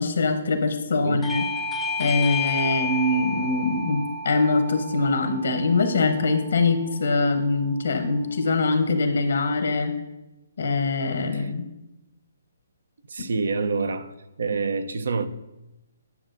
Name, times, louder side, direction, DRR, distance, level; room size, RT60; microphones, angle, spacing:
voice 1, 0.0-1.4 2.0-9.9 10.6-11.7 13.2-13.3, left 3 dB, 75° left, 0.9 m, -23 dB
Bell / Doorbell, 1.2-6.4, left 3 dB, 5° left, 0.6 m, -31 dB
voice 2, 13.0-15.3, right 4 dB, 70° right, 0.6 m, -27 dB
9.5 x 6.2 x 2.6 m
hypercardioid pair, 145°, 0 cm